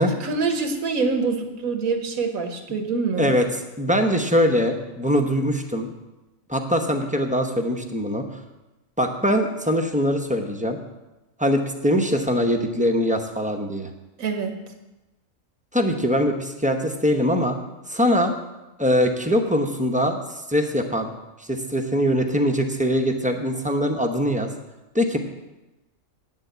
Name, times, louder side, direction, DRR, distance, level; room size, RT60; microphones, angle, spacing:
voice 1, 0.0-3.3 14.2-14.5, right 4 dB, 90° right, 6 dB, 1.6 m, -25 dB
voice 2, 3.2-5.9 6.5-8.4 9.0-10.8 11.4-13.9 15.7-17.6 17.9-18.3 18.8-20.2 20.5-21.1 21.4-24.5 24.9-25.2, equal, 5° right, 4 dB, 0.7 m, -22 dB
9.0 x 7.1 x 8.0 m, 1.0 s
omnidirectional pair, 1.4 m